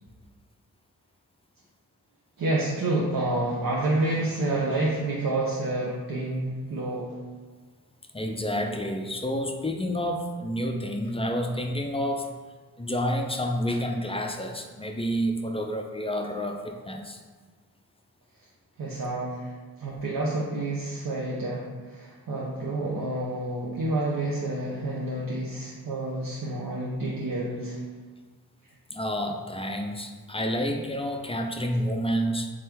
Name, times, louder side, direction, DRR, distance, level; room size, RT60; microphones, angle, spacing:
voice 1, 2.4-7.2 18.8-19.5 19.8-27.8, right 2 dB, 60° right, -4 dB, 0.7 m, -29 dB
voice 2, 8.1-12.3 12.8-17.2 28.9-32.5, equal, 15° left, 3 dB, 0.4 m, -29 dB
3.6 x 3.0 x 3.4 m, 1.4 s
cardioid pair, 45°, 38 cm